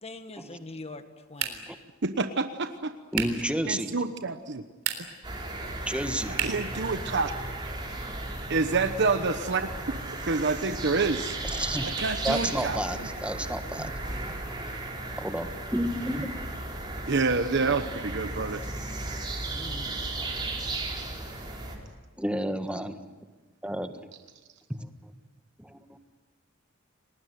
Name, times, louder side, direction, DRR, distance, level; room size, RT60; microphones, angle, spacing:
voice 1, 0.0-1.7 19.5-19.9, left 2 dB, 30° left, 9 dB, 1.5 m, -43 dB
sound 1, 1.3-1.8 3.1-3.5 4.7-5.3 6.3-6.7, right 8 dB, 90° right, 3.8 m, -32 dB
voice 2, 2.0-2.9 3.6-4.6 6.4-7.3 7.6-7.7 8.5-9.7 10.2-11.4 11.8-13.1 13.8-13.9 17.1-18.6, right 4 dB, 60° right, 9 dB, 1.1 m, -28 dB
voice 3, 3.1-3.9 5.9-6.5 11.6-11.9 12.2-13.9 15.2-16.3 22.2-23.0 23.6-23.9 24.7-25.1 25.6-25.8, equal, 5° right, 8 dB, 1.5 m, -31 dB
sound 2, 5.2-21.8, right 2 dB, 20° right, 4.7 m, -35 dB
29.5 x 19.5 x 9.5 m, 1.3 s
head